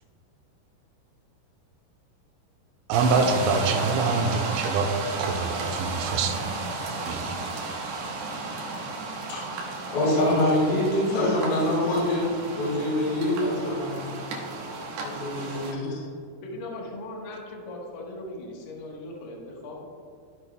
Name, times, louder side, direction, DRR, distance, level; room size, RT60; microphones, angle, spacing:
sound 1, 2.9-15.7, right 3 dB, 70° right, 2.8 m, -33 dB
voice 1, 2.9-4.9 5.2-6.4 7.1-7.4, right 4 dB, 85° right, 3 dB, 2.8 m, -25 dB
voice 2, 9.3-14.0 14.9-16.1, left 1 dB, 55° left, -6 dB, 3.1 m, -25 dB
voice 3, 16.4-19.9, left 1 dB, 70° left, -2 dB, 2.2 m, -39 dB
14.5 x 6.8 x 2.2 m, 2.5 s
omnidirectional pair, 5.9 m